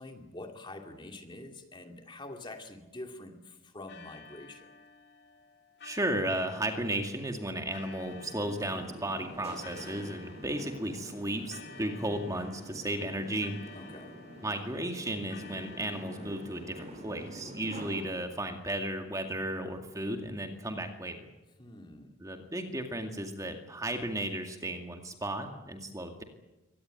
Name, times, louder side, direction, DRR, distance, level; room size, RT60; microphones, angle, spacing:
voice 1, 0.0-4.7 13.7-14.1 21.6-22.2, left 2 dB, 25° left, 4 dB, 2.5 m, -46 dB
sound 1, 3.9-17.8, left 5 dB, 55° left, 2.1 m, -53 dB
voice 2, 5.8-13.6 14.4-21.3 22.2-26.2, right 1 dB, 15° right, 4 dB, 2.1 m, -34 dB
sound 2, 8.0-18.0, right 1 dB, 35° right, 5.7 m, -47 dB
24.0 x 18.5 x 9.1 m, 1.0 s
head